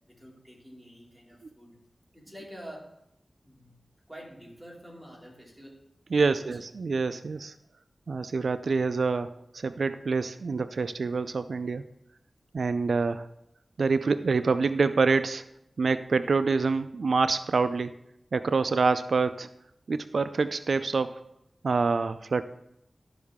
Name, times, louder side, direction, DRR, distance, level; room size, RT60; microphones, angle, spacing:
voice 1, 0.1-1.8 2.1-2.9 3.4-3.8 4.1-5.8 6.2-6.6, equal, 5° right, -3 dB, 2.6 m, -47 dB
voice 2, 6.1-7.5 8.1-11.8 12.5-13.3 13.8-15.4 15.8-17.9 18.3-19.5 19.9-21.2 21.6-22.4, right 4 dB, 80° right, 12 dB, 0.3 m, -26 dB
13.0 x 5.5 x 3.6 m, 0.81 s
wide cardioid pair, 75°, 0 cm